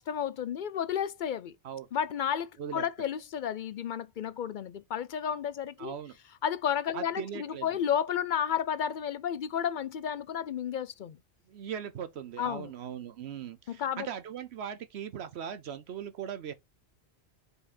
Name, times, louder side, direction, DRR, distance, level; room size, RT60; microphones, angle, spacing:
voice 1, 0.0-1.5 1.9-5.9 6.4-11.2 12.4-12.7 13.7-14.1, left 8 dB, 60° left, 0.6 m, -32 dB
voice 2, 5.8-6.2 6.9-7.7 11.5-16.5, right 8 dB, 75° right, 1.0 m, -39 dB
5.0 x 4.8 x 4.2 m
omnidirectional pair, 1.1 m